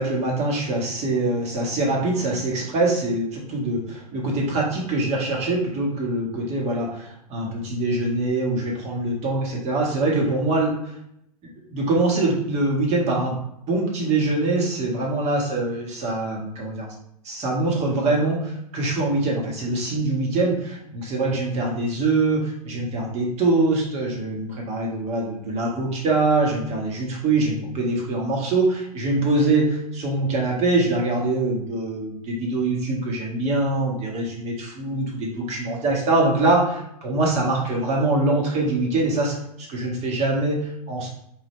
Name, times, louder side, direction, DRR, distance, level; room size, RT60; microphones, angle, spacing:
voice 1, 0.0-10.8 11.7-13.3 13.7-16.9 17.2-39.3 39.7-41.1, right 2 dB, 35° right, -2 dB, 1.6 m, -23 dB
4.6 x 3.3 x 3.2 m, 0.75 s
hypercardioid pair, 110°, 20 cm